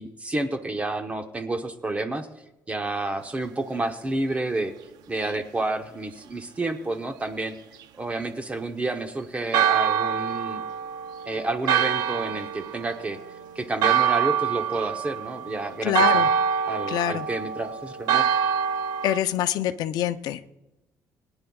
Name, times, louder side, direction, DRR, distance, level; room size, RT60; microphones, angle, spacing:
voice 1, 0.0-2.3 2.7-4.7 5.1-7.5 8.0-10.6 11.3-13.2 13.5-16.3 16.7-18.2, right 2 dB, 20° right, 6 dB, 0.9 m, -30 dB
Church bell, 9.5-19.2, right 8 dB, 90° right, 0.6 m, -25 dB
voice 2, 15.8-16.3 16.9-17.3 19.0-20.5, left 12 dB, 85° left, 10 dB, 0.6 m, -25 dB
22.5 x 9.8 x 2.3 m, 0.97 s
cardioid pair, 120°, 7 cm